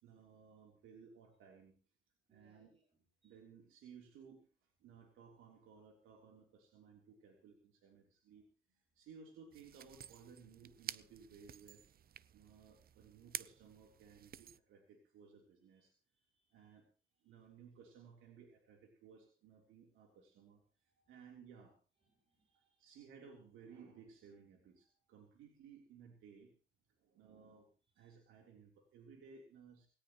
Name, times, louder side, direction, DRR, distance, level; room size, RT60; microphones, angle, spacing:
voice 1, 0.0-1.7 2.3-2.7 3.2-8.5 8.7-11.8 12.3-15.9 16.5-16.9 17.2-21.8 22.8-26.5 27.0-27.7 28.0-29.9, right 6 dB, 90° right, 2 dB, 3.5 m, -59 dB
voice 2, 2.3-3.4 8.7-8.8 15.6-15.8 16.1-16.8 17.2-17.4 20.8-21.2 22.0-23.1 27.9-28.1, right 2 dB, 30° right, 3 dB, 4.6 m, -78 dB
sound 1, 9.5-14.6, right 9 dB, 50° right, 0.6 m, -51 dB
19.5 x 17.5 x 3.1 m, 0.35 s
cardioid pair, 90°, 20 cm